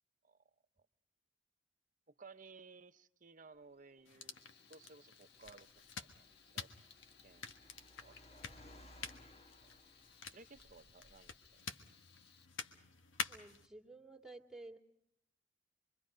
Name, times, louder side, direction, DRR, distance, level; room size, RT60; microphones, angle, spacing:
voice 1, 2.1-4.4 4.7-5.7 6.0-6.7 7.2-7.5 8.0-8.2 9.6-9.7 10.3-12.0, right 4 dB, 45° right, 11 dB, 0.9 m, -59 dB
Car, 3.6-11.5, left 1 dB, 35° left, 1.7 m, -63 dB
sound 1, 4.0-13.7, left 5 dB, 85° left, 1.6 m, -49 dB
Frying (food), 4.3-12.5, left 6 dB, 60° left, 1.5 m, -66 dB
voice 2, 13.3-14.8, right 2 dB, 5° right, 3 dB, 2.4 m, -53 dB
26.5 x 23.5 x 5.1 m, 0.76 s
head